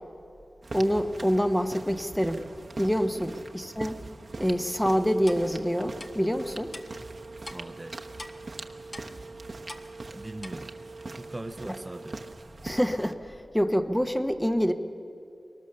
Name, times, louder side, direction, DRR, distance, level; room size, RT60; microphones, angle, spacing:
sound 1, 0.6-13.1, right 2 dB, 55° right, 1.1 m, -43 dB
voice 1, 0.7-2.4 2.8-4.0 4.4-6.7 11.7-11.8 12.6-14.7, equal, 5° left, 7 dB, 1.1 m, -26 dB
Telephone, 4.3-12.3, right 2 dB, 85° right, 1.8 m, -46 dB
Clock, 5.3-5.4 6.0-6.1 6.7-6.8 7.4-7.6 8.2-8.3 8.9-9.1 9.7-9.8 10.4-10.5, left 1 dB, 30° left, 1.4 m, -41 dB
voice 2, 7.4-8.0 10.1-10.7 11.1-12.2, right 1 dB, 25° right, 7 dB, 0.8 m, -40 dB
22.5 x 19.5 x 6.7 m, 2.6 s
wide cardioid pair, 70°, 0 cm